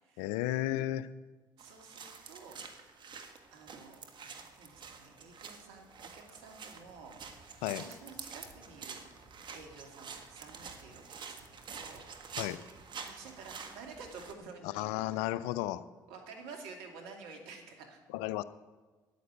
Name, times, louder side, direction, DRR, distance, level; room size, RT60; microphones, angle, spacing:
voice 1, 0.2-1.1 7.6-7.8 12.4-12.6 14.6-15.8 18.1-18.4, left 14 dB, 70° left, 16 dB, 0.5 m, -33 dB
sound 1, 1.6-14.3, right 5 dB, 45° right, 1.6 m, -48 dB
voice 2, 1.6-2.6 3.5-9.0 9.5-11.5 11.7-12.4 13.0-15.4 16.1-18.0, right 4 dB, 70° right, 3 dB, 2.5 m, -51 dB
9.4 x 9.4 x 9.4 m, 1.3 s
hypercardioid pair, 55°, 11 cm